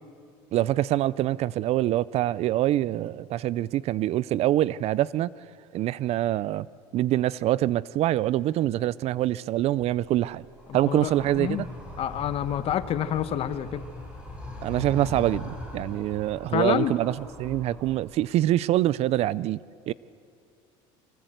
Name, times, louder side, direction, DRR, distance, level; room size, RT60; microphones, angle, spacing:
voice 1, 0.5-5.3 5.7-6.7 6.9-10.4 10.7-11.7 14.6-19.6 19.9-20.0, right 14 dB, 50° right, 0.5 m, -25 dB
Animal, 9.7-18.3, left 1 dB, 10° right, 6.2 m, -41 dB
voice 2, 10.7-11.6 12.0-13.8 16.5-16.9, left 10 dB, 45° left, 1.1 m, -28 dB
24.5 x 18.5 x 8.0 m
cardioid pair, 120°, 14 cm